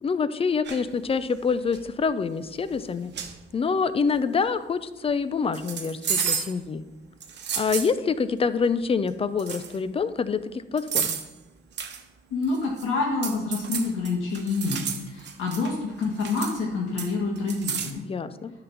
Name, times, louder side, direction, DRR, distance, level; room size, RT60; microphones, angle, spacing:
voice 1, 0.0-3.1 3.5-6.8 7.5-11.2 18.0-18.5, left 5 dB, 30° left, 13 dB, 0.5 m, -26 dB
sound 1, 0.6-0.9 1.5-1.8 2.7-2.8 3.1-3.4 5.5-6.6 7.2-7.9 9.1-9.2 9.4-9.8 10.8-11.3 11.8-12.0 12.4-12.9 13.2-15.7 16.0-16.6 17.0-17.9, right 7 dB, 60° right, 1.0 m, -31 dB
voice 2, 12.3-18.0, left 3 dB, 75° left, -4 dB, 1.6 m, -27 dB
9.6 x 4.0 x 5.8 m, 1.1 s
cardioid pair, 90°, 20 cm